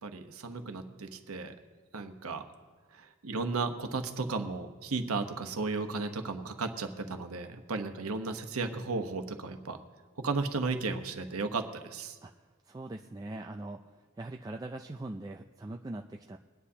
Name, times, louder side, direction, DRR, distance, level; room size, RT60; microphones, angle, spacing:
voice 1, 0.0-1.5 1.9-2.4 2.9-9.8 10.2-12.2, right 3 dB, 90° right, 7 dB, 1.0 m, -34 dB
voice 2, 12.2-16.4, right 2 dB, 20° right, 3 dB, 0.3 m, -42 dB
21.5 x 10.0 x 2.8 m, 1.4 s
head